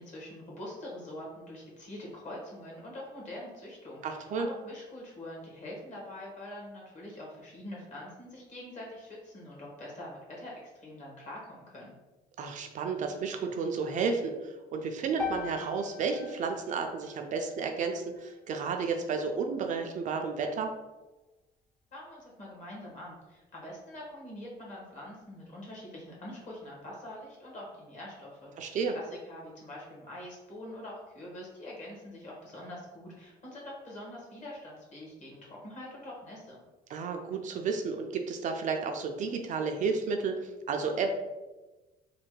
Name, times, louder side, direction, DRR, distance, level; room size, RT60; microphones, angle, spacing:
voice 1, 0.0-11.9 21.9-36.6, left 1 dB, 45° left, -3 dB, 1.3 m, -44 dB
voice 2, 4.0-4.5 12.4-20.7 28.6-28.9 36.9-41.1, right 5 dB, 50° right, 4 dB, 0.4 m, -32 dB
sound 1, 15.2-19.4, left 5 dB, 5° left, 0.5 m, -42 dB
3.2 x 2.2 x 3.1 m, 1.1 s
cardioid pair, 110°, 17 cm